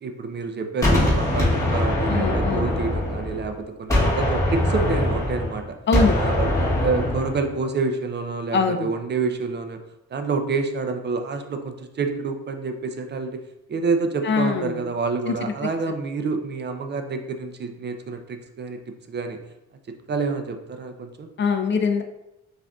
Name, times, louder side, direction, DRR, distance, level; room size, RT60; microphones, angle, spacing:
voice 1, 0.0-5.6 6.1-9.8 10.1-13.4 13.7-18.8 19.1-19.4 19.9-21.3, right 4 dB, 35° right, 6 dB, 0.4 m, -28 dB
Gunshot gunfire, 0.8-3.5 3.9-7.4, left 1 dB, 10° left, 1.3 m, -22 dB
voice 2, 2.1-2.7 5.9-6.2 8.5-8.9 14.2-14.9 15.3-15.4 21.4-22.0, left 5 dB, 40° left, 6 dB, 0.4 m, -22 dB
5.8 x 2.6 x 2.3 m, 0.88 s
cardioid pair, 90°, 30 cm